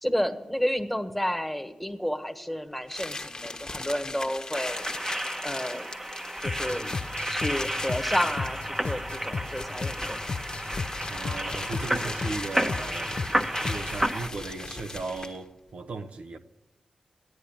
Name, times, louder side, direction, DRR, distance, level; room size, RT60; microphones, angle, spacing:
voice 1, 0.0-4.9 5.4-5.9 6.4-6.9 7.3-10.2, equal, 5° left, 1.4 m, -31 dB
sound 1, 2.9-15.5, left 2 dB, 30° left, 1.4 m, -39 dB
sound 2, 4.5-14.3, right 1 dB, 15° right, 1.1 m, -32 dB
sound 3, 6.5-14.1, left 4 dB, 55° left, 0.6 m, -36 dB
voice 2, 11.1-16.4, right 3 dB, 75° right, 1.0 m, -37 dB
13.5 x 11.0 x 8.6 m
cardioid pair, 55°, 2 cm